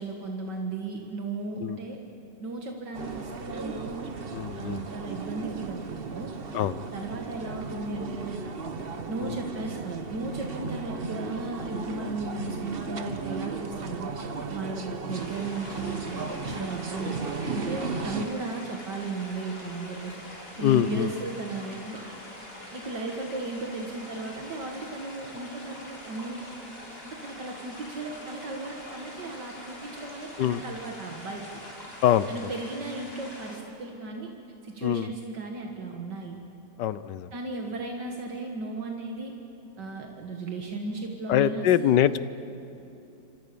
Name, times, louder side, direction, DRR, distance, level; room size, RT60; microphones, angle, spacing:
voice 1, 0.0-2.0 2.4-4.1 4.6-6.3 6.9-8.5 9.1-14.1 14.5-17.2 17.5-20.1 20.6-22.0 22.7-26.4 27.0-31.6 32.3-34.3 34.6-36.4 37.3-39.3 39.8-42.1, right 3 dB, 75° right, 1 dB, 2.4 m, -35 dB
sound 1, 2.9-18.3, right 4 dB, 35° right, 1.2 m, -35 dB
voice 2, 4.3-4.8 6.5-6.8 9.2-9.4 20.6-21.1 30.4-30.6 32.0-32.5 34.8-35.1 36.8-37.3 41.3-42.2, left 11 dB, 80° left, 16 dB, 1.4 m, -24 dB
sound 2, 15.1-33.6, left 1 dB, 35° left, 4.2 m, -44 dB
27.5 x 26.0 x 6.9 m, 2.8 s
omnidirectional pair, 1.9 m